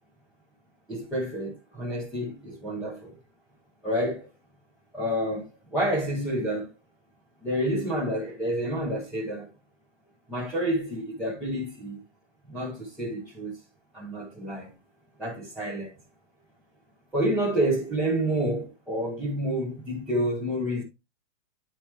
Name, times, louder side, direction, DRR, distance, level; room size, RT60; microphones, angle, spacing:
voice 1, 0.9-3.2 3.8-4.3 4.9-6.7 7.4-9.5 10.3-12.0 12.5-13.6 13.9-14.7 15.2-15.9 17.1-20.8, right 1 dB, ahead, 0.4 m, -29 dB
8.6 x 4.4 x 3.1 m
hypercardioid pair, 155°, 38 cm